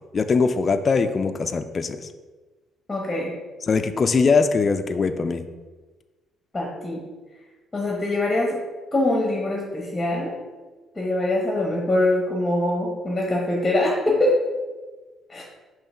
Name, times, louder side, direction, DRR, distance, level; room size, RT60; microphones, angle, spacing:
voice 1, 0.1-2.0 3.7-5.5, left 4 dB, 40° left, 8 dB, 0.4 m, -21 dB
voice 2, 2.9-3.3 6.5-7.0 7.7-8.6 8.9-10.3 11.0-14.4 15.3-15.4, left 1 dB, 15° left, -2 dB, 1.1 m, -23 dB
5.5 x 3.0 x 5.6 m, 1.3 s
cardioid pair, 95°, 0 cm